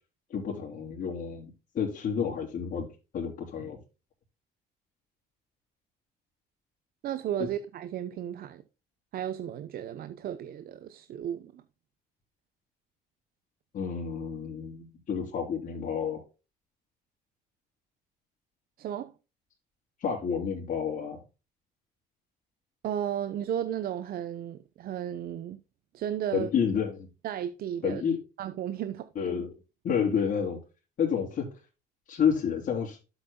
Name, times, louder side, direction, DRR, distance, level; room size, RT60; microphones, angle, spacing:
voice 1, 0.3-2.9 3.1-3.8 7.4-7.5 13.7-16.2 20.0-21.2 26.3-27.1 27.8-28.2 29.2-29.5 29.8-30.6 31.0-31.5 32.1-33.0, left 7 dB, 55° left, 3.5 m, -30 dB
voice 2, 7.0-8.6 9.1-11.6 18.8-19.1 22.8-25.6 25.9-26.5 27.2-28.0 28.4-29.1, right 10 dB, 60° right, 0.8 m, -34 dB
12.0 x 8.3 x 2.3 m
cardioid pair, 110°, 17 cm